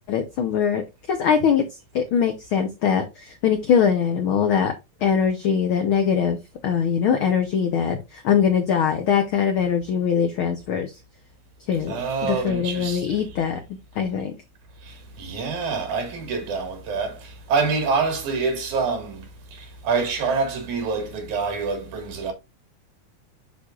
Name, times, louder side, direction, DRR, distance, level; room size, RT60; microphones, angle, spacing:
voice 1, 0.1-1.7 1.9-4.7 5.0-6.4 6.6-10.9 11.7-13.6 13.9-14.3, left 7 dB, 90° left, 1.1 m, -22 dB
voice 2, 11.9-13.2 14.8-22.3, right 4 dB, 75° right, 3.2 m, -26 dB
7.9 x 6.1 x 2.4 m
omnidirectional pair, 3.5 m